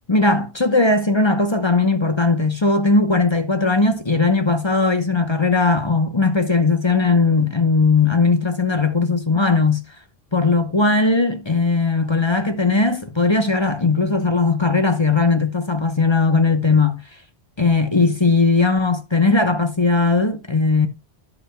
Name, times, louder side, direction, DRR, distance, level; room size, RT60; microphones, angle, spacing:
voice 1, 0.1-9.8 10.3-17.0 17.6-20.9, left 3 dB, 25° left, 0.9 m, -18 dB
11.5 x 8.5 x 2.2 m
omnidirectional pair, 1.1 m